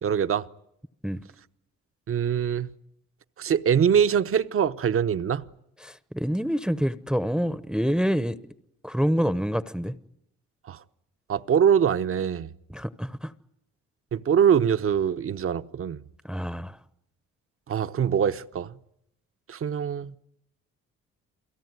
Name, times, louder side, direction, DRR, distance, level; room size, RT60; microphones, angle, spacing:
voice 1, 0.0-0.5 2.1-2.7 3.4-5.4 10.7-10.8 11.3-12.5 14.1-16.0 17.7-18.7 19.5-20.2, right 8 dB, 45° right, 0.9 m, -23 dB
voice 2, 5.8-8.4 8.8-9.9 12.7-13.3 16.2-16.8, equal, 5° right, 0.9 m, -27 dB
29.0 x 17.5 x 9.5 m
cardioid pair, 90°, 30 cm